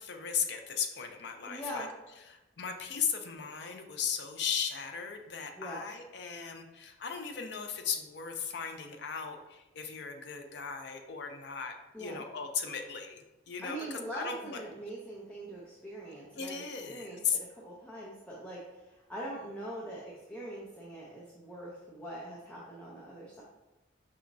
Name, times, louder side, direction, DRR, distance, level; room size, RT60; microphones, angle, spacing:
voice 1, 0.0-1.9 2.2-11.7 12.0-14.6 16.4-17.4, left 7 dB, 60° left, 5 dB, 0.5 m, -37 dB
voice 2, 1.4-1.9 5.6-5.8 11.9-12.2 13.6-23.4, right 1 dB, 5° left, -6 dB, 0.6 m, -43 dB
5.5 x 3.0 x 2.6 m, 1.0 s
head